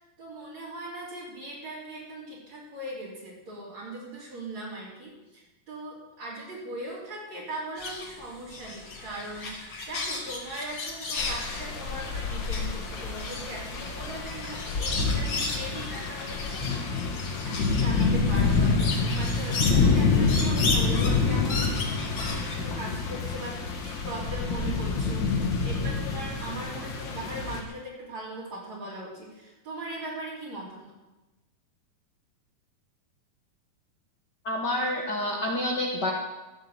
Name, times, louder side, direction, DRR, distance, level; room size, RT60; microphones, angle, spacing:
voice 1, 0.2-21.8 22.2-30.9, right 1 dB, 50° right, -6 dB, 4.5 m, -39 dB
sound 1, 7.8-22.6, left 3 dB, 45° left, 2.9 m, -35 dB
sound 2, 11.2-27.6, left 4 dB, 60° left, 1.2 m, -27 dB
voice 2, 34.4-36.1, left 1 dB, 90° left, -1 dB, 0.9 m, -28 dB
15.0 x 7.5 x 8.0 m, 1.1 s
omnidirectional pair, 4.4 m